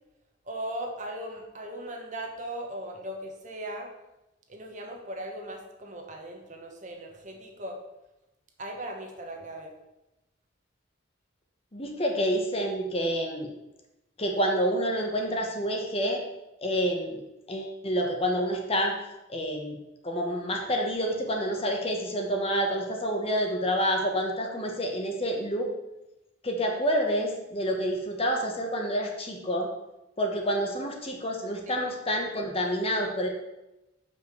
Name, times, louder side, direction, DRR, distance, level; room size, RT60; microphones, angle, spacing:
voice 1, 0.4-3.9 4.5-7.8 8.6-9.7 31.6-31.8, right 1 dB, 40° right, 2 dB, 1.2 m, -38 dB
voice 2, 11.7-13.5 14.2-16.2 16.6-17.2 17.5-18.9 19.3-19.8 20.0-25.7 26.4-29.7 30.2-33.3, equal, 30° left, 2 dB, 1.1 m, -28 dB
5.5 x 5.0 x 6.6 m, 0.95 s
head